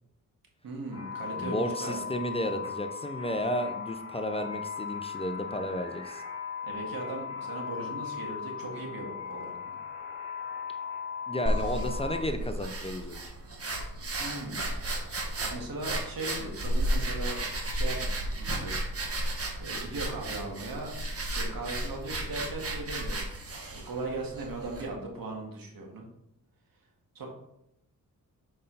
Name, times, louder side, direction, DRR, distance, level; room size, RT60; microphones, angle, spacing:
voice 1, 0.6-2.0 6.6-9.8 14.2-14.7 15.4-17.4 17.7-18.7 19.6-20.9 21.2-23.2 23.7-26.1 27.2-27.3, right 2 dB, 75° right, 0 dB, 1.9 m, -38 dB
sound 1, 0.9-12.2, left 7 dB, 15° right, 2.6 m, -38 dB
voice 2, 1.4-6.2 11.3-13.3, equal, 15° left, 7 dB, 0.6 m, -33 dB
sound 2, 11.5-24.9, right 1 dB, 40° right, 1.6 m, -33 dB
6.4 x 5.4 x 4.0 m, 0.84 s
cardioid pair, 70°, 35 cm